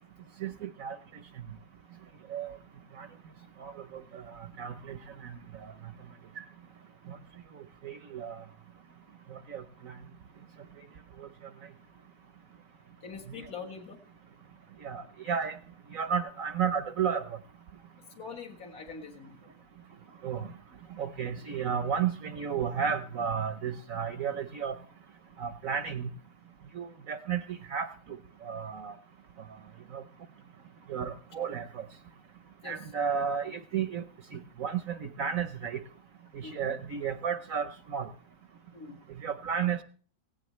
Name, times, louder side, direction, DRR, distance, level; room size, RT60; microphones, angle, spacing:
voice 1, 0.4-1.0 2.3-2.6 3.0-3.1 3.6-5.7 7.1-7.2 7.5-8.4 9.3-10.0 11.2-11.3 13.4-13.5 14.8-15.6 15.9-17.4 20.2-20.5 21.0-24.8 25.4-26.1 26.7-28.9 29.9-30.0 30.9-31.8 32.6-34.0 34.3-35.8 36.3-38.1 39.2-39.8, right 7 dB, 60° right, 10 dB, 1.0 m, -33 dB
voice 2, 13.0-14.0 18.2-19.5 32.6-32.9 36.4-36.8 38.7-39.0, left 5 dB, 55° left, 1 dB, 2.1 m, -44 dB
17.0 x 16.5 x 3.2 m, 0.42 s
omnidirectional pair, 1.9 m